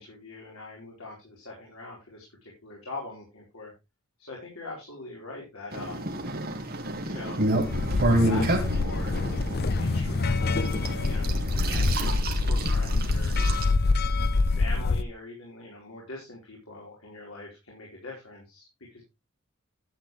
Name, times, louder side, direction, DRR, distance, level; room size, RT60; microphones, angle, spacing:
voice 1, 0.0-3.7 4.2-6.2 7.0-7.4 8.2-9.2 9.6-13.8 14.5-18.6 18.9-19.0, left 2 dB, 85° left, -3 dB, 4.6 m, -43 dB
sound 1, 5.7-13.6, right 1 dB, 50° right, 2.0 m, -30 dB
sound 2, 7.5-15.0, left 3 dB, 50° left, 0.6 m, -26 dB
12.0 x 8.6 x 3.3 m, 0.24 s
head